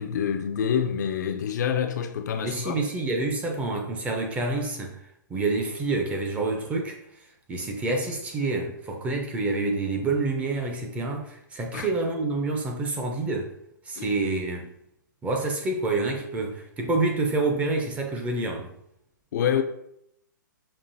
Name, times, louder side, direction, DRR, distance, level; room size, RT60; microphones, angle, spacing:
voice 1, 0.0-2.8 11.7-11.9 14.0-14.1 19.3-19.6, left 8 dB, 60° left, 0.4 m, -27 dB
voice 2, 2.4-5.0 5.3-7.0 7.5-13.5 13.9-14.7 15.2-18.7, right 3 dB, 10° right, 0.5 m, -27 dB
5.3 x 2.4 x 2.6 m
hypercardioid pair, 150°, 11 cm